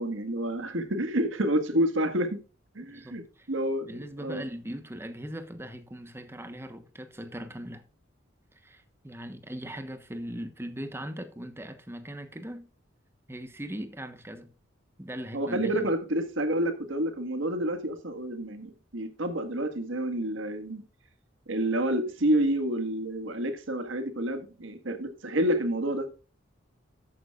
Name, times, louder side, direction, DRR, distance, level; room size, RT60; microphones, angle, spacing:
voice 1, 0.0-2.4 2.8-3.2 3.5-4.4 15.3-20.8 21.5-26.1, right 1 dB, 80° right, 1.7 m, -29 dB
voice 2, 2.9-3.5 3.9-7.8 8.5-12.7 13.3-14.5 15.0-15.9, equal, 15° right, 1.2 m, -39 dB
13.5 x 9.4 x 2.5 m
head